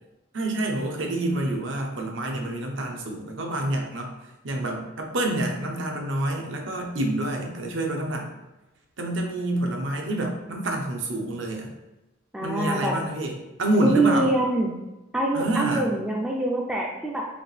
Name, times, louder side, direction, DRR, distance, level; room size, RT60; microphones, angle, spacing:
voice 1, 0.3-4.1 4.4-8.3 9.0-11.7 12.4-13.3 13.6-14.3 15.3-15.9, right 1 dB, 70° right, 1 dB, 0.7 m, -27 dB
voice 2, 12.3-12.9 13.8-14.8 15.1-17.2, right 2 dB, 5° right, -2 dB, 0.3 m, -24 dB
5.1 x 2.5 x 3.2 m, 1.0 s
head